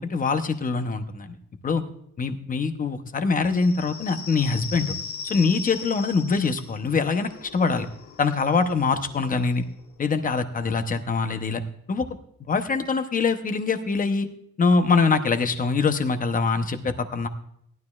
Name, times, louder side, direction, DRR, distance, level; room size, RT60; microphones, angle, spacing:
voice 1, 0.0-1.4 1.6-1.8 2.2-4.9 5.2-7.9 8.2-9.7 10.0-11.6 11.9-12.1 12.4-14.3 14.6-17.3, left 4 dB, 25° left, 8 dB, 0.8 m, -24 dB
sound 1, 3.5-10.7, left 5 dB, 60° left, 1.1 m, -40 dB
18.0 x 11.5 x 2.4 m, 0.70 s
cardioid pair, 175°, 33 cm